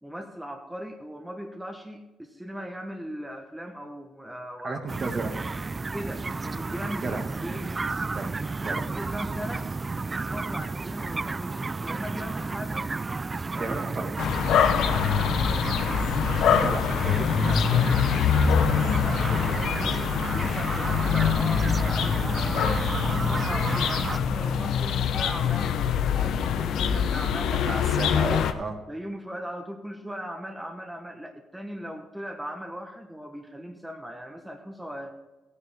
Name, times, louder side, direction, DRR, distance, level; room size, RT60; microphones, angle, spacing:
voice 1, 0.0-4.8 5.1-5.2 5.9-7.8 8.6-9.7 10.1-12.9 13.5-13.8 14.3-14.5 18.8-22.7 23.0-25.8 26.1-28.1 28.9-35.2, equal, 5° right, 2 dB, 1.3 m, -39 dB
voice 2, 4.6-5.3 7.0-7.2 8.1-8.2 8.6-8.8 13.6-14.1 16.4-19.9 27.5-28.8, right 3 dB, 40° right, 3 dB, 2.0 m, -34 dB
sound 1, 4.9-24.2, right 3 dB, 25° right, 0.3 m, -32 dB
sound 2, 14.2-28.5, left 7 dB, 75° left, 0.8 m, -24 dB
15.0 x 9.7 x 3.6 m, 1.1 s
cardioid pair, 90°, 0 cm